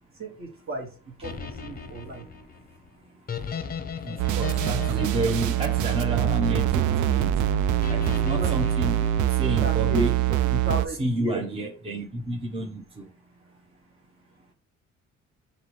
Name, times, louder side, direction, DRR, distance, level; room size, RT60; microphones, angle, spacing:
voice 1, 0.2-2.2 8.3-8.5 9.6-10.2 10.6-11.5, equal, 45° right, 1.6 m, -34 dB
sound 1, 1.2-6.5 7.8-9.7, left 6 dB, 30° left, 0.7 m, -37 dB
voice 2, 1.7-10.6 10.9-13.6 14.3-14.5, right 1 dB, 20° right, 0.8 m, -32 dB
sound 2, 4.2-10.9, right 12 dB, 80° right, 0.5 m, -24 dB
4.7 x 3.1 x 3.1 m
cardioid pair, 90°, 30 cm